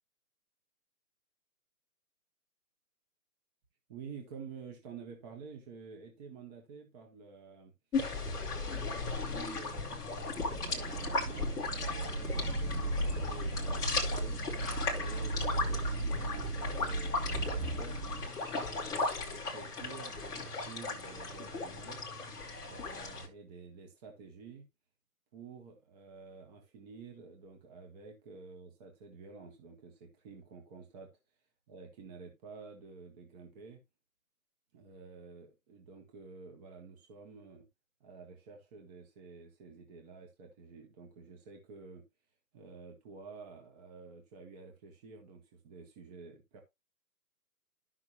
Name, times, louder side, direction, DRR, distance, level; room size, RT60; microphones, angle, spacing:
voice 1, 3.9-7.7 8.4-14.4 14.8-18.0 18.6-22.0 22.6-24.7 25.3-31.1 31.7-33.8 34.7-37.7 38.0-42.0 42.5-46.6, right 5 dB, 25° right, 1.5 m, -50 dB
sound 1, 7.9-23.3, left 3 dB, 10° left, 1.1 m, -37 dB
sound 2, 10.4-18.3, right 2 dB, 85° right, 2.3 m, -36 dB
12.5 x 6.0 x 2.9 m
hypercardioid pair, 145°, 47 cm